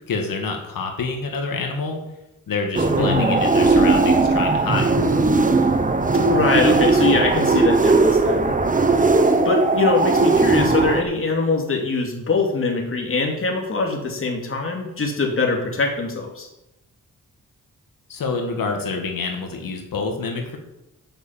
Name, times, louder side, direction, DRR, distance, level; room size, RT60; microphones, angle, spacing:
voice 1, 0.1-2.0 2.5-4.9 18.1-20.6, left 4 dB, 90° left, 2 dB, 1.9 m, -27 dB
sound 1, 2.7-11.0, right 3 dB, 25° right, 1.0 m, -18 dB
voice 2, 3.0-3.4 6.3-8.6 9.4-16.5, left 3 dB, 40° left, 0 dB, 2.7 m, -22 dB
9.2 x 8.0 x 7.5 m, 0.90 s
wide cardioid pair, 135°, 33 cm